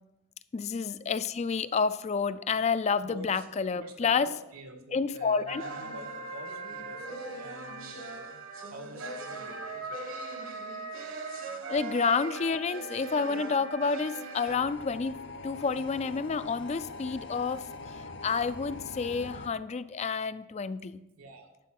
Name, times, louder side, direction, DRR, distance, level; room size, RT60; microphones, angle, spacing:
voice 1, 0.5-4.3 4.9-5.6 11.7-21.0, left 5 dB, 30° left, 14 dB, 0.3 m, -29 dB
voice 2, 3.0-3.5 3.7-8.4 8.7-10.0 21.2-21.5, right 1 dB, 90° right, 5 dB, 1.8 m, -47 dB
sound 1, 5.5-14.6, right 3 dB, 65° right, 1.3 m, -39 dB
sound 2, 14.5-19.5, left 3 dB, 55° left, 0.7 m, -43 dB
11.5 x 4.5 x 7.6 m, 0.91 s
head